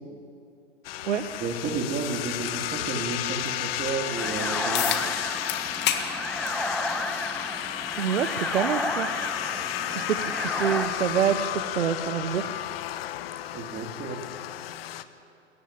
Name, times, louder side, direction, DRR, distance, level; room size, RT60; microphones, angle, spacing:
sound 1, 0.8-15.0, left 13 dB, 55° left, 1.1 m, -33 dB
voice 1, 1.4-4.9 13.5-14.2, right 4 dB, 25° right, 3 dB, 3.1 m, -32 dB
sound 2, 4.2-10.9, left 1 dB, ahead, 1.2 m, -32 dB
sound 3, 4.7-5.0 5.5-6.1 6.5-6.6 7.7-7.8 12.7-12.8, left 11 dB, 30° left, 1.8 m, -27 dB
voice 2, 8.0-9.1 9.9-12.5, right 9 dB, 80° right, 9 dB, 1.2 m, -27 dB
26.5 x 14.5 x 8.8 m, 2.6 s
hypercardioid pair, 125°, 35 cm